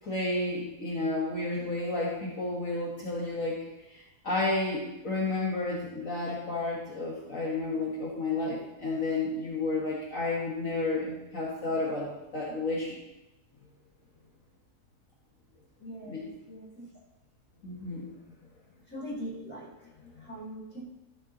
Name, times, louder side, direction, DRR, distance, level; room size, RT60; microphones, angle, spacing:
voice 1, 0.0-13.0 16.1-16.3 17.6-18.1 20.2-20.4, left 2 dB, 55° left, -4 dB, 2.0 m, -31 dB
voice 2, 15.8-16.9 18.9-19.7 20.2-20.8, equal, 5° left, -6 dB, 4.1 m, -41 dB
13.5 x 7.3 x 4.0 m, 0.97 s
omnidirectional pair, 1.6 m